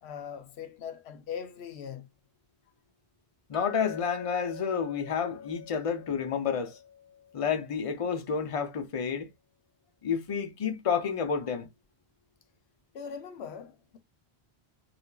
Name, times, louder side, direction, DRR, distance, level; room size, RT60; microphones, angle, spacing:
voice 1, 0.0-2.1 12.9-14.0, left 7 dB, 90° left, 0.9 m, -40 dB
voice 2, 3.5-6.8 7.3-9.3 10.0-11.7, left 6 dB, 45° left, 0.4 m, -30 dB
Chink clink, 3.5-8.0, left 8 dB, 25° left, 1.6 m, -45 dB
3.2 x 2.1 x 2.2 m
omnidirectional pair, 1.1 m